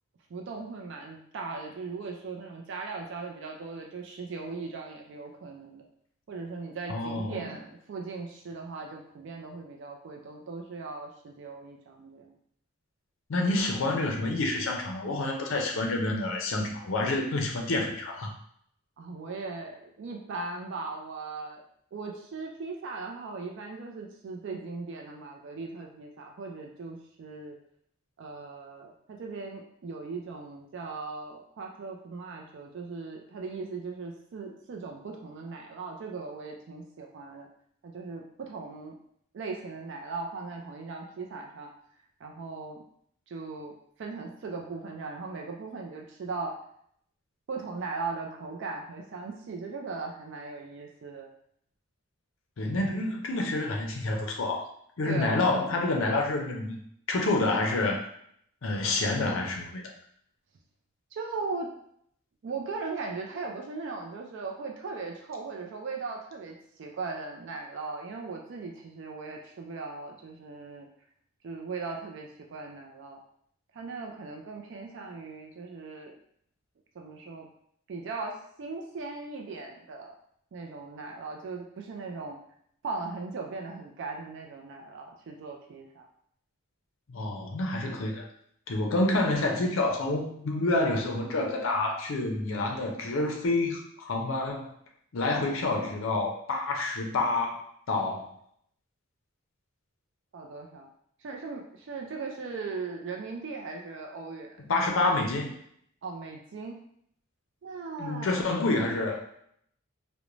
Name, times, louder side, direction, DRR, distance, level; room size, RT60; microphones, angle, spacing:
voice 1, 0.3-5.9 6.3-12.3 19.0-21.6 21.9-27.6 28.2-37.5 37.8-39.0 39.3-41.7 42.2-42.8 43.3-46.5 47.5-51.3 55.0-55.3 61.1-61.7 62.4-70.9 71.4-73.2 73.7-76.1 76.9-77.5 77.9-80.1 80.5-82.4 82.8-86.1 100.3-100.9 101.2-104.6 106.0-106.8 107.6-108.3, right 4 dB, 55° right, 1 dB, 0.3 m, -38 dB
voice 2, 6.9-7.5 13.3-18.3 52.6-54.7 55.0-56.8 57.1-58.0 58.6-59.9 87.1-88.2 88.7-94.7 95.1-98.3 104.7-105.5 108.0-109.2, left 2 dB, 65° left, 2 dB, 0.5 m, -28 dB
2.5 x 2.1 x 3.0 m, 0.67 s
head